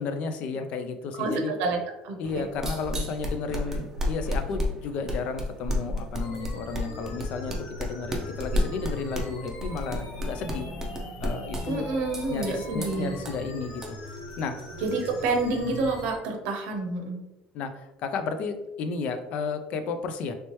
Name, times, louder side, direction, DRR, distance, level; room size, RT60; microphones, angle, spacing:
voice 1, 0.0-1.5 2.2-10.7 11.2-11.9 12.3-14.0 14.4-14.6 17.5-20.3, left 4 dB, 55° left, 8 dB, 0.4 m, -33 dB
voice 2, 1.1-2.5 11.7-13.2 14.8-17.2, right 3 dB, 75° right, 3 dB, 0.6 m, -28 dB
sound 1, 2.2-16.0, left 1 dB, 15° right, 0.5 m, -33 dB
sound 2, 6.2-16.2, left 1 dB, 75° left, 0.7 m, -41 dB
3.1 x 2.9 x 3.0 m, 1.0 s
cardioid pair, 155°, 3 cm